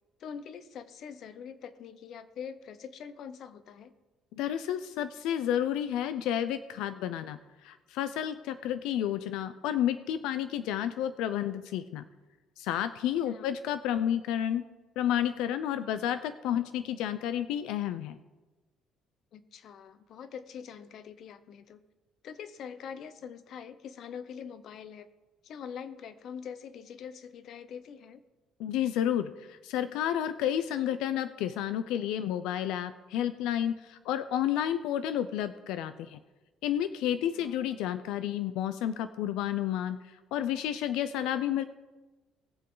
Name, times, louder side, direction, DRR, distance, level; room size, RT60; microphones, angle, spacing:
voice 1, 0.2-3.9 13.2-13.5 19.3-21.8 22.2-25.1 25.4-28.2 37.3-37.6, left 7 dB, 55° left, 13 dB, 0.7 m, -44 dB
voice 2, 4.3-12.0 12.6-14.6 15.0-18.2 28.6-36.2 36.6-41.6, left 10 dB, 90° left, 12 dB, 0.4 m, -31 dB
19.5 x 6.9 x 3.9 m, 1.2 s
cardioid pair, 145°, 0 cm